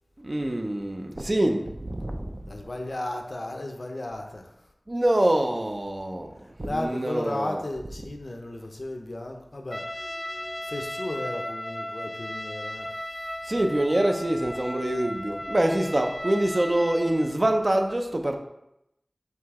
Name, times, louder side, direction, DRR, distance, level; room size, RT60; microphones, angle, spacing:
voice 1, 0.2-2.3 4.9-6.3 6.7-7.6 10.3-10.7 13.4-18.4, right 1 dB, 45° right, 4 dB, 0.5 m, -25 dB
voice 2, 2.5-4.5 6.6-10.1 10.7-12.9, left 1 dB, 70° left, 3 dB, 0.5 m, -34 dB
Trumpet, 9.7-17.4, left 1 dB, 15° left, 0.3 m, -36 dB
4.8 x 2.7 x 3.6 m, 0.83 s
wide cardioid pair, 55°, 0 cm